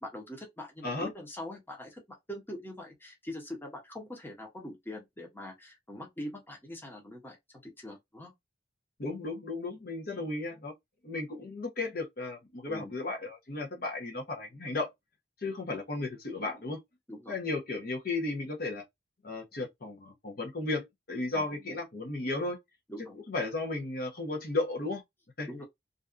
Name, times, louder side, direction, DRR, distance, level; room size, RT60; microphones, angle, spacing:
voice 1, 0.0-2.0 2.3-7.4 7.6-8.3 12.7-12.9 17.1-17.4 21.3-21.8 22.9-23.2 25.5-25.6, left 1 dB, 10° left, 0.7 m, -43 dB
voice 2, 9.0-10.7 11.0-14.9 15.4-16.8 17.3-18.8 19.2-22.6 23.3-25.0 25.4-25.5, left 2 dB, 55° left, 0.7 m, -34 dB
2.5 x 2.3 x 2.4 m
head